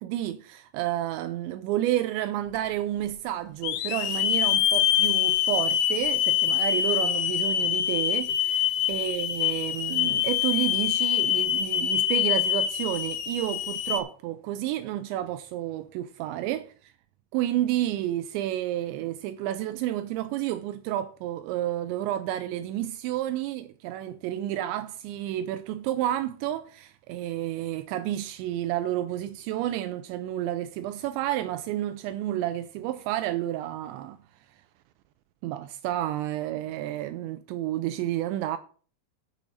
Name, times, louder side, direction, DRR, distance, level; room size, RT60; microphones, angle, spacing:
voice 1, 0.0-16.6 17.3-34.2 35.4-38.6, right 13 dB, 85° right, 2.9 m, -30 dB
Hiss / Alarm, 2.5-2.6 3.6-14.0, left 10 dB, 90° left, 3.2 m, -25 dB
9.2 x 7.2 x 5.4 m
omnidirectional pair, 5.1 m